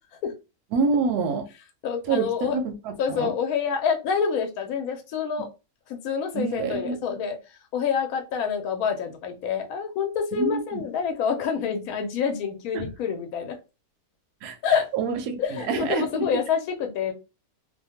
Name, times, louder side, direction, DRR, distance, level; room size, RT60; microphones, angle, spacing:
voice 1, 0.7-1.5 2.1-3.3 6.3-7.2 10.3-10.8 12.7-12.8 14.4-14.6 14.9-16.4, right 5 dB, 75° right, 6 dB, 1.1 m, -27 dB
voice 2, 1.8-2.6 3.0-5.5 5.9-7.4 7.7-13.6 14.6-14.8 15.4-17.1, left 7 dB, 70° left, 5 dB, 1.0 m, -27 dB
2.7 x 2.2 x 2.8 m, 0.28 s
omnidirectional pair, 1.7 m